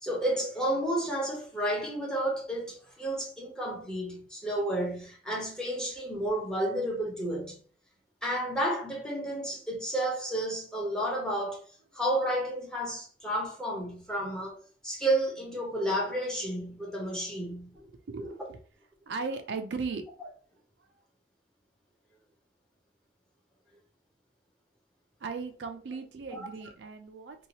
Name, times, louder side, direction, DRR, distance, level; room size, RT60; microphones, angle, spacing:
voice 1, 0.0-7.6 8.2-11.6 11.9-14.6 14.8-17.9 18.2-18.3 26.3-26.4, right 1 dB, 5° left, 0.8 m, -31 dB
voice 2, 17.9-18.6 19.1-20.0 25.2-27.5, right 4 dB, 70° right, 0.4 m, -37 dB
2.8 x 2.3 x 2.8 m
head